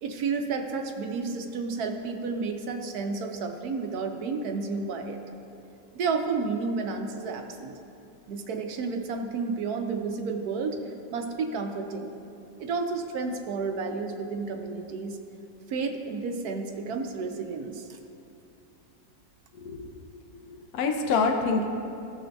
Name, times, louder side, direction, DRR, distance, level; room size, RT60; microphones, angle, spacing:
voice 1, 0.0-5.2 5.9-7.7 8.3-10.8 11.1-12.1 12.6-15.2 15.7-18.0, right 4 dB, 70° right, 5 dB, 1.0 m, -31 dB
voice 2, 19.6-20.2 20.5-21.6, left 4 dB, 65° left, 3 dB, 1.0 m, -27 dB
16.0 x 6.2 x 2.3 m, 2.9 s
omnidirectional pair, 1.9 m